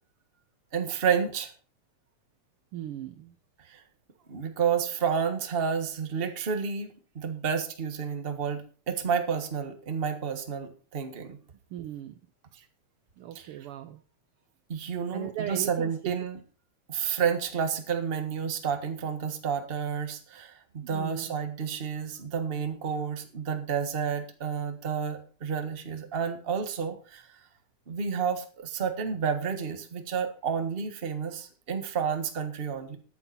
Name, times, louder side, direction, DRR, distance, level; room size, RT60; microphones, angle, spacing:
voice 1, 0.7-1.5 3.7-3.8 4.3-11.4 13.3-13.6 14.7-16.4 16.9-27.4 27.9-33.0, right 7 dB, 35° right, 7 dB, 1.0 m, -30 dB
voice 2, 2.7-3.3 11.7-12.2 13.2-14.0 15.1-16.1 20.8-21.3, right 11 dB, 85° right, 10 dB, 1.2 m, -38 dB
14.0 x 9.6 x 4.2 m, 0.39 s
omnidirectional pair, 3.4 m